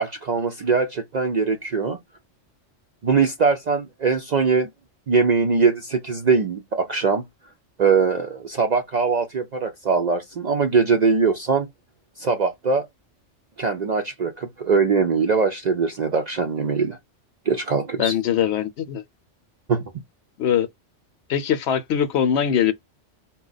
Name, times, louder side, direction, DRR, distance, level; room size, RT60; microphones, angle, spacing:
voice 1, 0.0-2.0 3.0-4.7 5.1-7.2 7.8-11.7 12.2-12.9 13.6-17.0 17.5-18.1 19.7-19.8, right 5 dB, 55° right, 0.4 m, -21 dB
voice 2, 18.0-19.0 20.4-20.7 21.3-22.7, left 9 dB, 70° left, 0.8 m, -21 dB
4.2 x 2.2 x 3.9 m
omnidirectional pair, 1.3 m